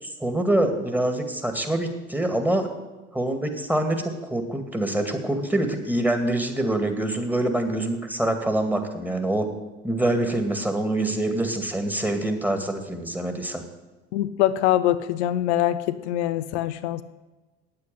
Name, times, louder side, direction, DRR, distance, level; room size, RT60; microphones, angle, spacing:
voice 1, 0.0-2.7 3.1-9.5 9.8-13.6, right 1 dB, 5° right, 6 dB, 2.2 m, -25 dB
voice 2, 14.1-17.0, left 13 dB, 75° left, 12 dB, 0.6 m, -23 dB
9.1 x 8.7 x 9.2 m, 1.2 s
hypercardioid pair, 60°, 34 cm